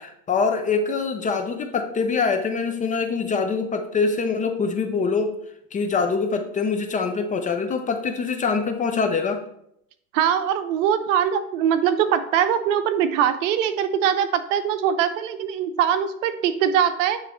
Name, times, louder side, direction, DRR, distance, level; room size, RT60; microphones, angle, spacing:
voice 1, 0.0-5.4 5.7-9.4, left 5 dB, 20° left, 6 dB, 0.5 m, -24 dB
voice 2, 10.1-17.2, right 9 dB, 65° right, 10 dB, 0.9 m, -22 dB
9.2 x 3.2 x 4.3 m, 0.74 s
supercardioid pair, 115°, 41 cm